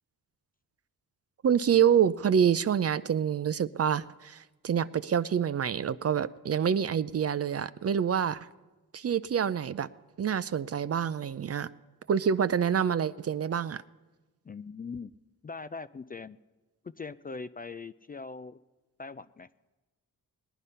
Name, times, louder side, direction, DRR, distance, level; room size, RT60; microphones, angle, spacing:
voice 1, 1.4-8.5 8.9-9.9 10.2-11.7 12.1-13.8, right 8 dB, 40° right, 15 dB, 0.5 m, -27 dB
voice 2, 14.4-15.1 15.4-16.4 16.8-18.6 19.0-19.5, left 4 dB, 25° left, 14 dB, 0.4 m, -41 dB
18.5 x 10.0 x 5.5 m, 1.2 s
supercardioid pair, 55°, 38 cm